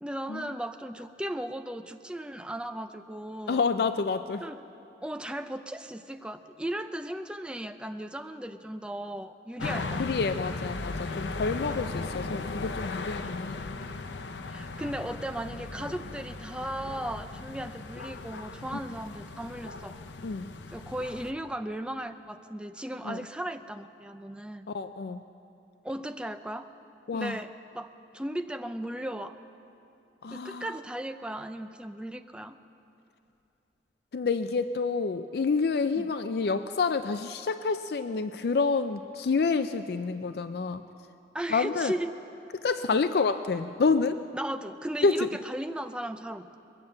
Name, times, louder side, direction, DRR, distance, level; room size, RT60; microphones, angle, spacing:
voice 1, 0.0-3.7 4.4-4.6 5.0-10.1 14.5-20.0 20.7-24.7 25.8-26.7 27.1-29.4 30.3-32.6 35.9-36.1 41.3-42.1 42.9-43.0 44.3-46.6, right 1 dB, 5° right, 8 dB, 0.4 m, -36 dB
voice 2, 3.5-4.4 10.0-13.6 20.2-20.5 23.0-23.2 24.7-25.2 27.1-27.4 30.2-30.7 34.1-40.8 41.5-41.9 42.6-44.2 45.0-45.3, left 4 dB, 60° left, 10 dB, 0.4 m, -28 dB
sound 1, 9.6-21.3, left 3 dB, 90° left, 0.7 m, -37 dB
22.0 x 8.7 x 7.6 m, 2.7 s
head